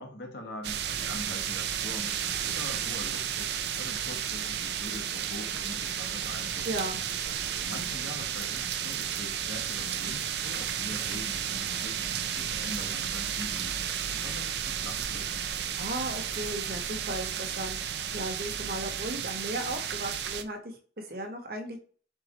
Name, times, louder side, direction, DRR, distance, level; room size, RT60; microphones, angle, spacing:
voice 1, 0.0-2.2 2.4-3.5 3.8-6.8 7.6-13.8 14.1-15.5, left 1 dB, 80° left, 3 dB, 1.2 m, -43 dB
sound 1, 0.6-20.4, right 9 dB, 70° right, 0.5 m, -33 dB
voice 2, 6.6-7.0 15.7-21.8, right 1 dB, 55° right, 3 dB, 1.1 m, -36 dB
4.6 x 3.8 x 3.0 m, 0.42 s
head